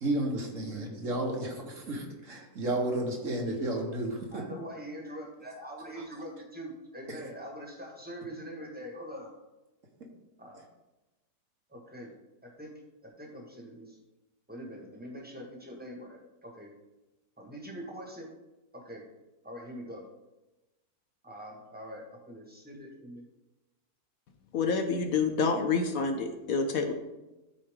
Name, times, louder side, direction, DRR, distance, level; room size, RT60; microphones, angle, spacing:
voice 1, 0.0-4.4, right 1 dB, 55° right, 1 dB, 1.6 m, -32 dB
voice 2, 2.8-3.1 4.3-9.3 10.4-10.6 11.7-12.1 12.4-14.0 14.5-16.7 17.4-18.3 18.7-19.1 19.4-20.0 21.2-23.2, equal, 5° right, -1 dB, 1.5 m, -43 dB
voice 3, 24.5-26.9, left 4 dB, 65° left, 6 dB, 1.1 m, -28 dB
13.0 x 4.6 x 3.6 m, 1.0 s
omnidirectional pair, 1.7 m